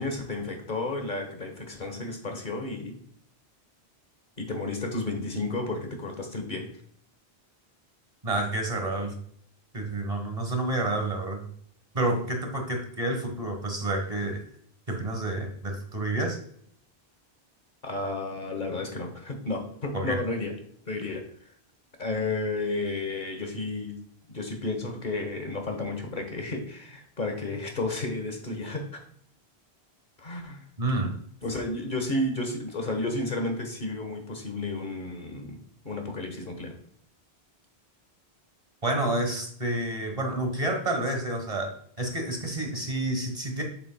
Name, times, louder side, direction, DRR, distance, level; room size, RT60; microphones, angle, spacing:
voice 1, 0.0-3.0 4.4-6.7 17.8-20.5 20.9-21.3 22.0-24.0 24.3-29.0 30.2-30.6 31.4-36.8, left 2 dB, 50° left, 4 dB, 1.4 m, -32 dB
voice 2, 8.2-9.1 9.7-11.5 11.9-14.4 14.9-16.4 19.9-20.2 30.8-31.1 38.8-43.6, right 2 dB, 35° right, 3 dB, 1.3 m, -29 dB
8.3 x 7.3 x 2.3 m, 0.62 s
omnidirectional pair, 1.1 m